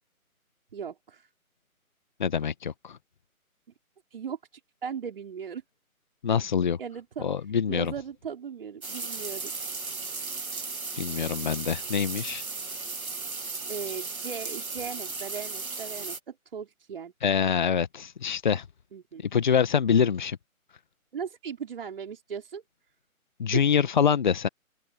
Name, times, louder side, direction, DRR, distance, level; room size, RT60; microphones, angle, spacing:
voice 1, 0.7-1.3 4.1-4.4 4.8-5.6 6.8-7.3 7.7-9.5 13.7-17.1 18.9-19.2 21.1-22.6 23.5-23.6, right 7 dB, 40° right, 4.7 m, -37 dB
voice 2, 2.2-3.0 6.2-6.8 7.2-7.9 11.0-12.4 17.2-18.6 19.2-20.4 23.4-24.5, left 7 dB, 30° left, 1.6 m, -25 dB
sound 1, 8.8-16.2, right 4 dB, 70° right, 3.1 m, -36 dB
open air
figure-of-eight pair, 155°, 44 cm